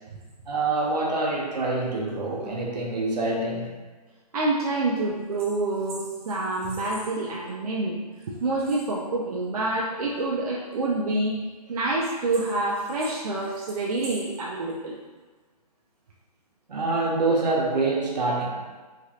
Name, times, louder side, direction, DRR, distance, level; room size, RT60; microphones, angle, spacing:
voice 1, 0.4-3.7 16.7-18.5, right 2 dB, 85° right, -2 dB, 0.9 m, -25 dB
voice 2, 4.3-8.0 8.3-11.4 11.7-15.0, right 2 dB, 65° right, -3 dB, 0.4 m, -27 dB
3.2 x 2.4 x 2.8 m, 1.3 s
hypercardioid pair, 175°, 21 cm